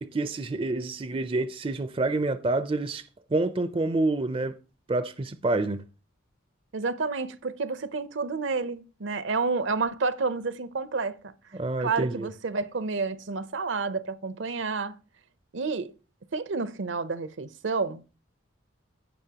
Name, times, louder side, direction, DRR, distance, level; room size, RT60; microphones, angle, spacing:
voice 1, 0.0-3.0 3.3-4.6 4.9-5.8 11.5-12.3, right 2 dB, 25° right, 0.4 m, -28 dB
voice 2, 6.7-11.2 11.8-14.9 15.5-15.9 16.3-18.0, right 4 dB, 65° right, 0.7 m, -30 dB
16.0 x 5.4 x 2.9 m
head